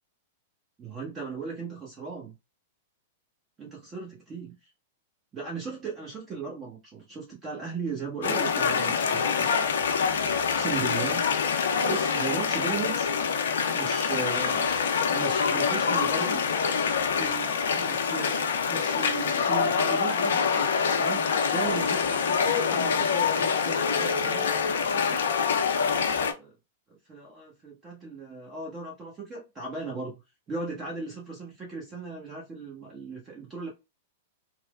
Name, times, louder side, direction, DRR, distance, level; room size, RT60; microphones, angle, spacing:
voice 1, 0.8-2.3 3.6-4.5 5.3-9.5 10.5-11.3 11.8-13.1 13.7-14.7 15.1-16.4 16.9-25.2 26.1-26.5 26.9-30.2 30.5-33.7, right 4 dB, 25° right, 0.9 m, -37 dB
sound 1, 8.2-26.3, left 6 dB, 70° left, 0.4 m, -25 dB
3.0 x 2.1 x 2.3 m
hypercardioid pair, 100°, 0 cm